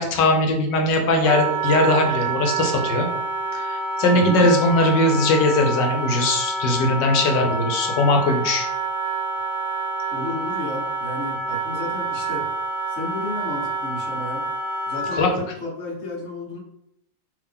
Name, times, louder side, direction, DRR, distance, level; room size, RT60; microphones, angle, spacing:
voice 1, 0.0-3.1 3.5-8.7 15.1-15.3, left 2 dB, 90° left, 2 dB, 1.4 m, -20 dB
Wind instrument woodwind instrument, 1.2-15.3, right 3 dB, 70° right, 1.0 m, -27 dB
voice 2, 4.1-4.5 10.1-12.5 12.9-14.4 14.9-16.6, left 2 dB, 50° left, -1 dB, 0.9 m, -32 dB
3.6 x 2.8 x 3.5 m, 0.75 s
omnidirectional pair, 1.9 m